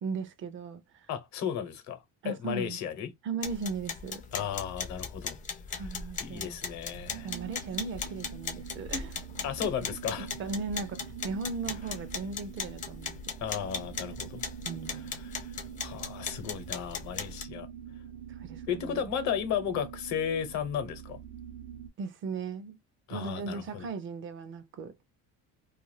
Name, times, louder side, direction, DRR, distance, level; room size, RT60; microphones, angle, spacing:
voice 1, 0.0-1.1 2.2-2.8 3.2-4.2 5.7-6.6 7.2-9.3 9.6-9.7 10.2-13.1 14.6-15.2 18.3-19.0 22.0-22.8 23.1-25.0, right 4 dB, 45° right, 0.4 m, -37 dB
voice 2, 1.1-3.1 4.3-5.4 5.7-5.8 6.2-7.3 9.4-10.3 13.4-14.4 14.9-15.5 15.8-17.7 18.7-21.2 23.1-23.8, left 8 dB, 70° left, 0.8 m, -34 dB
sound 1, 3.4-17.4, left 6 dB, 25° left, 0.4 m, -39 dB
sound 2, 6.9-21.9, right 9 dB, 75° right, 0.8 m, -45 dB
2.4 x 2.3 x 3.1 m
cardioid pair, 155°, 29 cm